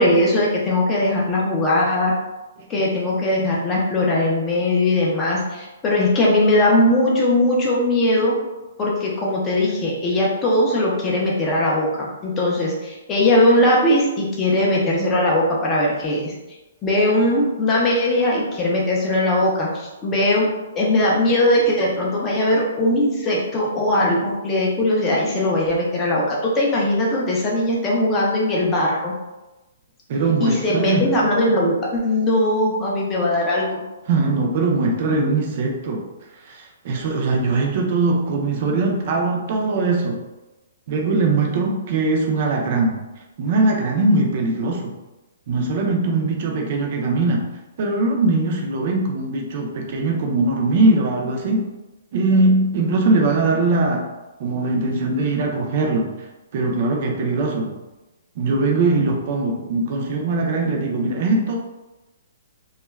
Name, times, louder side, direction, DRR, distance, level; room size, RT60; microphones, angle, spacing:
voice 1, 0.0-2.1 2.7-8.4 8.8-11.9 12.2-16.3 16.8-20.5 20.7-29.1 30.4-33.8, left 1 dB, 15° left, -4 dB, 0.5 m, -19 dB
voice 2, 30.1-31.1 34.1-36.0 36.4-40.2 40.9-43.0 43.4-44.9 45.5-47.4 47.8-51.7 52.1-54.1 54.4-56.2 56.5-57.8 58.4-61.5, right 3 dB, 35° right, 0 dB, 0.5 m, -21 dB
2.3 x 2.1 x 3.1 m, 1.1 s
hypercardioid pair, 170°, 0 cm